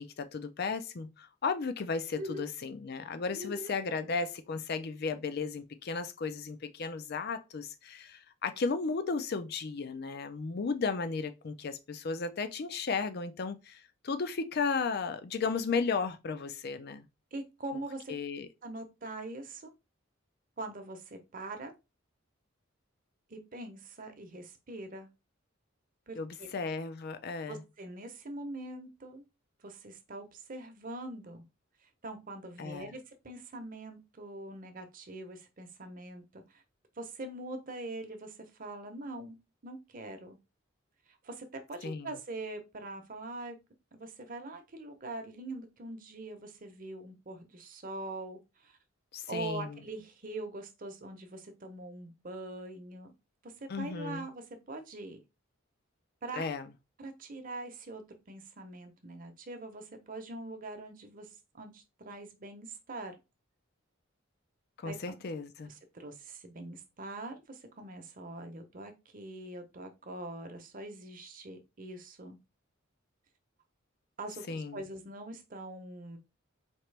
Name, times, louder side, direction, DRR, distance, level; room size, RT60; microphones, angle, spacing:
voice 1, 0.0-17.1 18.1-18.5 26.2-27.6 32.6-32.9 41.8-42.2 49.1-49.8 53.7-54.3 56.3-56.7 64.8-65.7 74.5-74.8, left 4 dB, 50° left, 0.5 m, -35 dB
voice 2, 2.2-2.5 3.3-3.7 17.3-18.1 18.6-19.7 20.6-21.7 23.3-25.1 26.1-26.5 27.5-29.2 29.6-31.4 32.0-36.6 37.0-39.4 39.6-40.4 41.2-43.6 43.9-48.8 49.3-53.1 53.4-55.2 56.2-56.5 57.0-61.3 61.5-63.1 64.8-65.0 65.7-72.4 74.2-76.2, right 2 dB, 45° right, 0.8 m, -43 dB
4.4 x 2.9 x 3.3 m
head